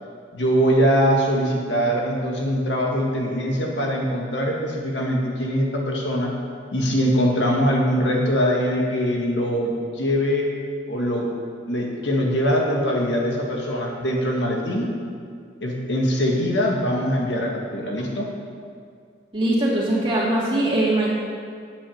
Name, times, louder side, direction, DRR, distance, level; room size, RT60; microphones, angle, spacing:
voice 1, 0.3-6.4 6.7-10.5 10.9-11.3 11.7-14.9 15.6-18.3, equal, 75° left, -1 dB, 1.9 m, -22 dB
voice 2, 19.3-21.1, right 1 dB, 25° right, -6 dB, 2.6 m, -21 dB
9.2 x 8.3 x 7.2 m, 2.2 s
head